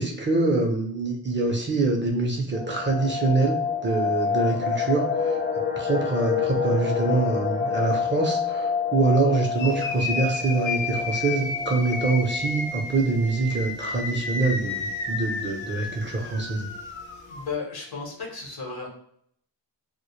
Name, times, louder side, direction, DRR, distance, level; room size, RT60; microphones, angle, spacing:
voice 1, 0.0-5.4 5.8-14.8 15.1-16.7, right 3 dB, 25° right, 0 dB, 0.6 m, -25 dB
sound 1, 2.5-13.3 13.6-13.7 14.1-14.2 14.7-15.1 15.6-15.7 15.9-16.4 16.7-16.8, left 6 dB, 20° left, 0.6 m, -28 dB
sound 2, 9.6-17.5, left 3 dB, 85° left, 0.8 m, -32 dB
voice 2, 17.3-18.9, left 5 dB, 55° left, 0 dB, 0.9 m, -34 dB
2.1 x 2.0 x 2.9 m, 0.67 s
cardioid pair, 55°, 45 cm